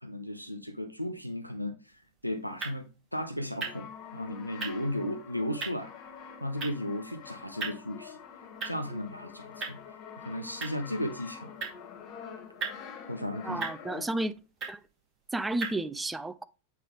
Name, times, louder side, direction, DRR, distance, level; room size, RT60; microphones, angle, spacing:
voice 1, 0.0-1.9 2.2-2.9 3.1-5.9 6.4-8.2 8.6-9.8 10.2-11.5 13.1-13.6, left 1 dB, 90° right, 0.6 m, -35 dB
sound 1, 1.8-15.8, right 4 dB, 30° right, 2.3 m, -43 dB
Brass instrument, 3.5-14.4, left 7 dB, 35° left, 1.0 m, -47 dB
voice 2, 13.4-14.3 14.7-14.8 15.3-16.4, right 2 dB, 10° right, 0.4 m, -32 dB
8.3 x 3.3 x 3.6 m
figure-of-eight pair, 90°, 0 cm